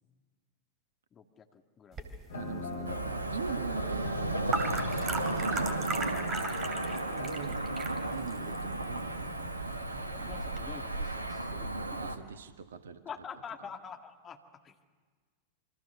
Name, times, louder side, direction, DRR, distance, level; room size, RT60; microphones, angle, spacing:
voice 1, 1.1-2.1 2.4-2.8 8.3-8.5 10.1-12.3 13.1-14.8, left 6 dB, 25° left, 5 dB, 2.0 m, -47 dB
sound 1, 1.9-10.6, right 3 dB, 25° right, 2.9 m, -39 dB
sound 2, 2.3-7.6, left 4 dB, 65° left, 3.6 m, -44 dB
voice 2, 2.3-7.6 8.1-10.0 12.0-13.0, right 6 dB, 65° right, 10 dB, 1.5 m, -43 dB
Cricket / Motor vehicle (road), 2.8-12.2, right 2 dB, 80° right, 1.3 m, -34 dB
27.5 x 25.0 x 6.9 m, 1.5 s
figure-of-eight pair, 90°, 0 cm